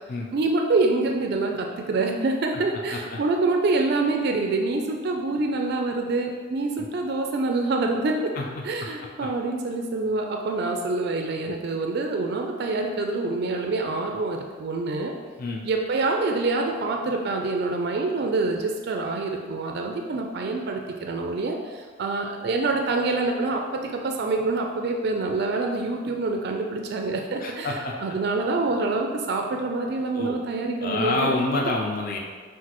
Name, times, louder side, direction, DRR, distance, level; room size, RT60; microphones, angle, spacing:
voice 1, 0.3-8.3 8.6-15.1 15.6-31.3, right 3 dB, 55° right, 2 dB, 0.3 m, -26 dB
voice 2, 27.4-27.9 30.1-30.3 30.8-32.2, left 2 dB, 45° left, -1 dB, 0.5 m, -27 dB
5.9 x 2.5 x 2.9 m, 1.5 s
head